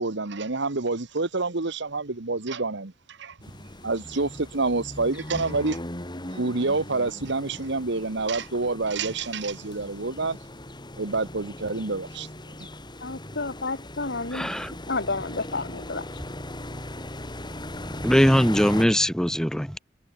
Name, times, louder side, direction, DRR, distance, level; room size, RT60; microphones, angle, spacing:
voice 1, 0.0-3.3 3.8-5.8 6.3-10.4 11.0-12.3, right 3 dB, 65° right, 1.4 m, -28 dB
sound 1, 3.4-18.9, left 1 dB, 25° left, 4.3 m, -39 dB
voice 2, 13.0-14.5 14.9-16.0, left 3 dB, 60° left, 3.2 m, -30 dB
voice 3, 14.3-14.7 18.0-19.8, equal, 5° left, 1.4 m, -21 dB
head